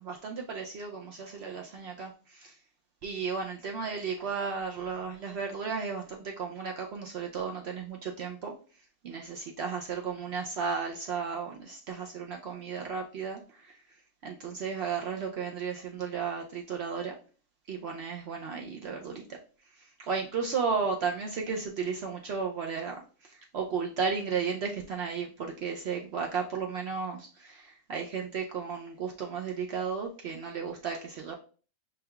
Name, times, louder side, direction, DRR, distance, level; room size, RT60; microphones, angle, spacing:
voice 1, 0.0-2.5 3.0-8.5 9.0-13.7 14.2-17.1 17.7-19.2 20.0-22.9 23.2-31.3, right 5 dB, 60° right, 1 dB, 0.7 m, -34 dB
5.2 x 3.3 x 2.3 m, 0.38 s
omnidirectional pair, 1.4 m